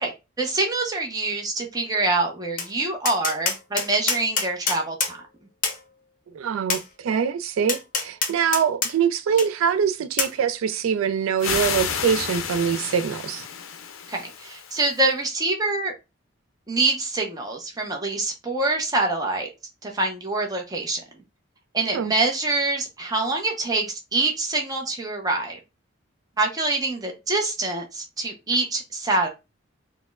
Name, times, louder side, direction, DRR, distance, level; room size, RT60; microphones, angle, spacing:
voice 1, 0.0-5.2 14.1-15.9 16.7-19.5 19.8-21.0 21.7-25.6 26.4-29.3, right 2 dB, 20° right, 0.6 m, -25 dB
Tap, 2.6-2.7 3.0-5.1 5.6-5.8 6.7-6.8 7.7-8.9 9.4-9.5 10.2-10.3, left 5 dB, 40° left, 0.6 m, -25 dB
voice 2, 6.3-13.4 21.9-22.1, right 7 dB, 90° right, 0.3 m, -24 dB
sound 1, 11.4-15.1, left 7 dB, 85° left, 0.5 m, -31 dB
4.1 x 2.1 x 2.3 m
head